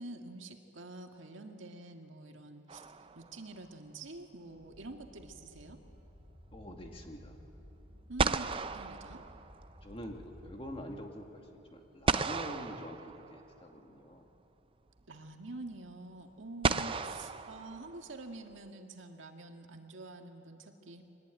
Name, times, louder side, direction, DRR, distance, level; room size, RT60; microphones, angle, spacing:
voice 1, 0.0-2.8 3.1-5.8 8.1-9.2 15.1-21.0, right 2 dB, 70° right, 4 dB, 1.8 m, -47 dB
sound 1, 2.7-3.6 7.6-7.7 8.2-9.9 12.1-13.7 15.0-15.1 16.6-18.3, right 4 dB, 25° right, 0.5 m, -34 dB
sound 2, 4.5-10.7, equal, ahead, 7.2 m, -55 dB
voice 2, 6.5-7.3 9.8-11.5 11.7-14.3 16.7-17.0, equal, 25° left, 2 dB, 2.0 m, -46 dB
23.5 x 19.5 x 9.1 m, 3.0 s
head